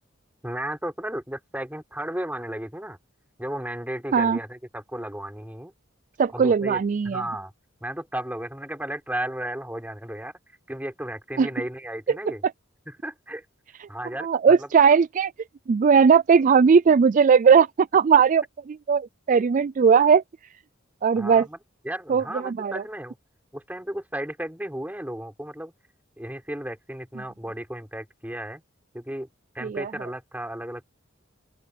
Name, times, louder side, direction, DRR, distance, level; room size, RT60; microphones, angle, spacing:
voice 1, 0.4-3.0 3.4-5.7 6.3-7.5 7.8-10.3 10.7-12.4 12.9-13.4 13.9-14.3 14.6-14.7 21.2-21.6 21.8-23.2 23.5-25.7 26.2-28.6 28.9-29.3 29.5-30.8, right 1 dB, 10° right, 5.8 m, -34 dB
voice 2, 6.2-7.2 11.4-11.5 12.1-12.2 14.2-15.3 15.7-20.2 21.0-21.5 22.1-22.8 29.6-29.9, right 6 dB, 40° right, 0.3 m, -19 dB
open air
head